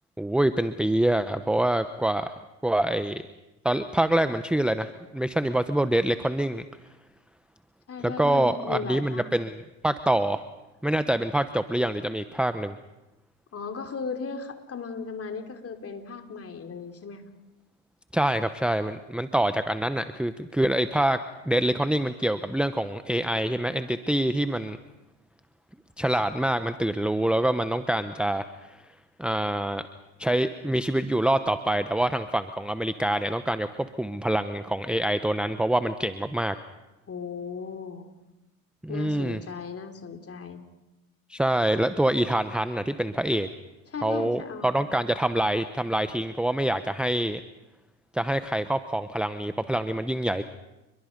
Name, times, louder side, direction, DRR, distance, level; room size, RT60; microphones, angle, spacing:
voice 1, 0.2-2.3 2.6-3.2 3.6-6.7 8.0-10.4 10.8-12.7 18.1-21.2 21.5-24.8 26.0-28.8 29.2-29.9 30.2-36.6 38.8-39.4 41.3-43.5 44.0-47.4 48.1-50.4, right 1 dB, ahead, 10 dB, 0.9 m, -25 dB
voice 2, 7.9-9.3 13.5-17.2 37.1-38.1 38.9-40.7 43.9-44.9, left 5 dB, 30° left, 6 dB, 3.2 m, -36 dB
29.5 x 22.5 x 5.3 m, 1.0 s
hypercardioid pair, 85°, 44 cm